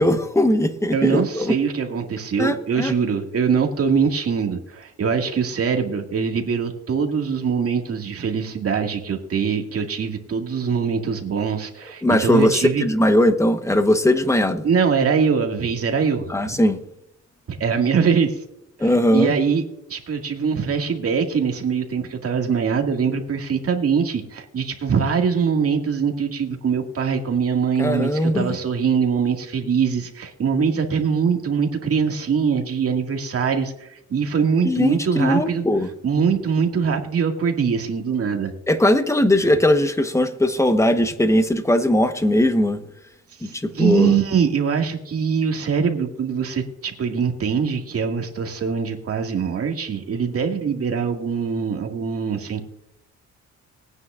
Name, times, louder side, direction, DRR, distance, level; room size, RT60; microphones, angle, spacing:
voice 1, 0.0-1.5 2.4-2.9 12.0-14.6 16.3-16.8 18.8-19.3 27.8-28.6 34.6-35.9 38.7-42.8 43.4-44.1, left 1 dB, 10° left, 8 dB, 1.2 m, -19 dB
voice 2, 0.9-12.8 14.6-16.6 17.5-18.4 18.8-19.6 19.9-35.6 36.0-38.5 43.4-52.6, right 6 dB, 50° right, 3 dB, 2.2 m, -23 dB
20.0 x 9.6 x 2.5 m, 0.81 s
cardioid pair, 90°, 30 cm